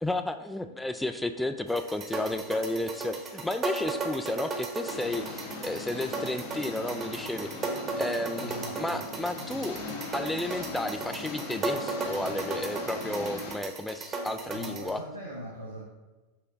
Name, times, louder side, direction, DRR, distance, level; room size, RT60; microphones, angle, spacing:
voice 1, 0.0-9.8 10.1-15.0, left 1 dB, 5° left, 8 dB, 0.3 m, -32 dB
sound 1, 1.7-14.9, right 3 dB, 25° right, 1.0 m, -36 dB
Engine, 4.9-13.5, left 3 dB, 55° left, 1.1 m, -40 dB
voice 2, 8.4-9.0 14.5-15.9, equal, 85° right, -4 dB, 0.9 m, -41 dB
5.8 x 3.3 x 5.1 m, 1.2 s
figure-of-eight pair, 90°, 0 cm